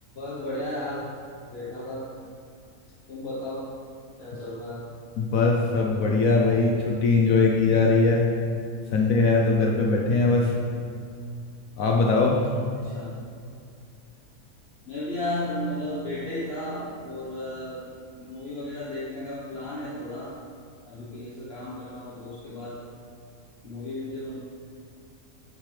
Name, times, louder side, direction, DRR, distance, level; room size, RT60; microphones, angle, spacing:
voice 1, 0.1-1.1 1.5-2.3 3.1-3.7 4.2-4.9 12.8-13.2 14.9-17.9 18.2-20.3 20.9-22.9 23.6-24.4, left 1 dB, 45° left, -7 dB, 1.4 m, -34 dB
voice 2, 5.2-8.3 8.9-10.5 11.8-12.4, left 3 dB, 70° left, 0 dB, 1.2 m, -21 dB
9.5 x 7.5 x 3.3 m, 2.3 s
omnidirectional pair, 1.5 m